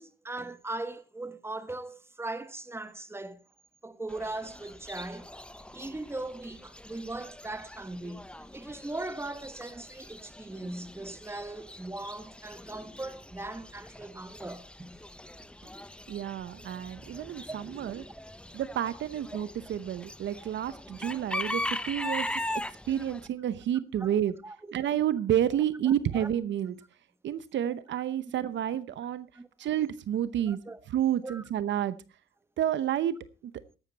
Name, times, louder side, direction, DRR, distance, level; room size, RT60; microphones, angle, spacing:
voice 1, 0.0-3.4 3.8-5.3 5.7-8.3 8.5-15.0 17.5-17.6 24.0-24.1 24.4-24.7 25.8-26.3 29.3-29.5 30.5-30.8 31.2-31.4, right 2 dB, 10° right, 1.3 m, -39 dB
Chicken rooster / Bird, 4.1-23.3, left 1 dB, 5° left, 0.8 m, -41 dB
voice 2, 16.1-18.0 18.5-21.6 21.9-22.3 22.9-24.3 24.7-26.7 27.2-29.3 29.6-30.6 30.9-32.0 32.6-33.2 33.4-33.5, right 10 dB, 65° right, 0.8 m, -29 dB
15.5 x 11.5 x 4.1 m
cardioid pair, 90°, 20 cm